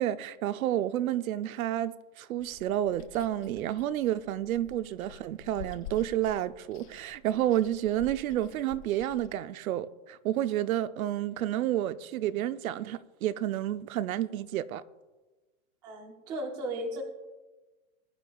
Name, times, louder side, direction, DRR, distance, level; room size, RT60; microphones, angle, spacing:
voice 1, 0.0-14.8, right 12 dB, 85° right, 0.7 m, -30 dB
Chewing mastication, 2.4-9.4, left 6 dB, 65° left, 4.0 m, -49 dB
voice 2, 15.8-17.0, right 1 dB, 10° right, 0.5 m, -35 dB
20.0 x 10.0 x 2.3 m
supercardioid pair, 175°, 41 cm